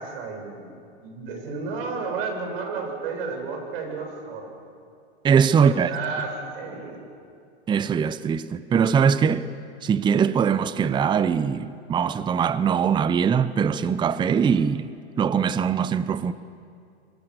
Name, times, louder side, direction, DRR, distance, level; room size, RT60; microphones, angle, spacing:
voice 1, 0.0-4.5 5.7-7.0, right 4 dB, 55° right, 7.9 m, -32 dB
voice 2, 5.2-5.9 7.7-9.5 9.8-14.9 15.2-16.3, right 7 dB, 15° right, 0.7 m, -21 dB
27.0 x 25.0 x 6.7 m
hypercardioid pair, 110°, 34 cm